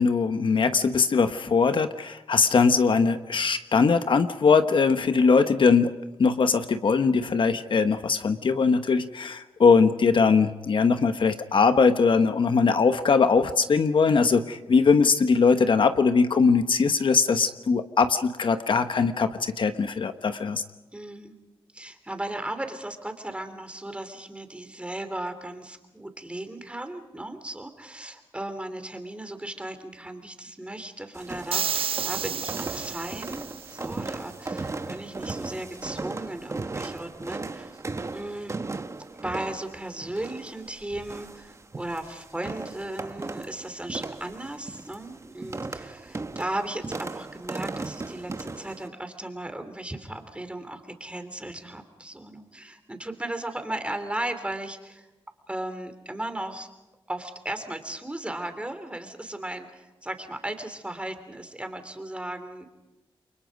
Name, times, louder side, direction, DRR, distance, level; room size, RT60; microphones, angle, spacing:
voice 1, 0.0-5.9 6.2-20.6, left 5 dB, 60° left, 9 dB, 1.0 m, -21 dB
voice 2, 20.9-21.3 21.7-37.8 38.1-38.6 39.2-55.1 55.5-56.7 57.1-62.6, right 1 dB, 10° right, 8 dB, 3.1 m, -36 dB
sound 1, 31.1-48.9, right 3 dB, 30° right, 1.0 m, -37 dB
sound 2, 31.5-33.8, right 7 dB, 70° right, 0.7 m, -31 dB
30.0 x 23.5 x 5.2 m, 1.0 s
cardioid pair, 85°, 10 cm